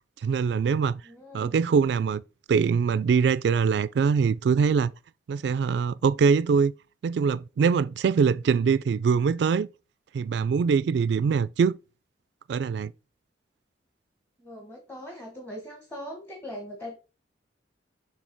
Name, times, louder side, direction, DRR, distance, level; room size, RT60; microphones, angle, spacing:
voice 1, 0.2-1.0 1.3-2.2 2.5-4.9 5.3-6.7 7.0-9.7 10.1-11.8 12.5-12.9, right 6 dB, 65° right, 0.3 m, -23 dB
voice 2, 1.0-1.6 14.4-16.9, equal, 10° left, 1.2 m, -40 dB
6.3 x 3.3 x 4.5 m
head